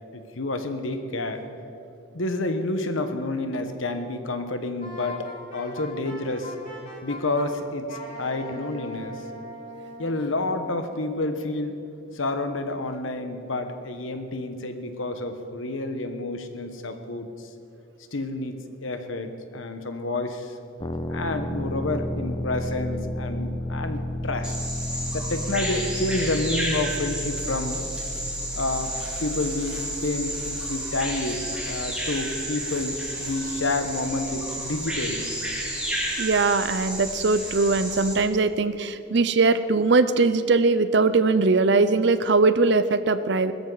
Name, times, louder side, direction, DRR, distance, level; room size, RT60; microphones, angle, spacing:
voice 1, 0.1-1.4 2.1-5.3 5.5-6.5 7.0-9.2 10.0-11.7 12.1-17.3 18.1-20.6 21.1-24.6 25.1-27.8 28.6-35.2, left 2 dB, 90° left, 7 dB, 1.2 m, -29 dB
Wind instrument woodwind instrument, 4.8-7.5 7.9-10.3, left 1 dB, 45° left, 4.3 m, -40 dB
sound 1, 20.8-32.4, left 1 dB, 20° left, 0.6 m, -33 dB
Bird vocalization bird call bird song, 24.4-38.1, right 1 dB, 5° right, 2.5 m, -31 dB
voice 2, 36.2-43.5, right 3 dB, 60° right, 13 dB, 0.6 m, -21 dB
20.0 x 13.5 x 4.0 m, 2.6 s
head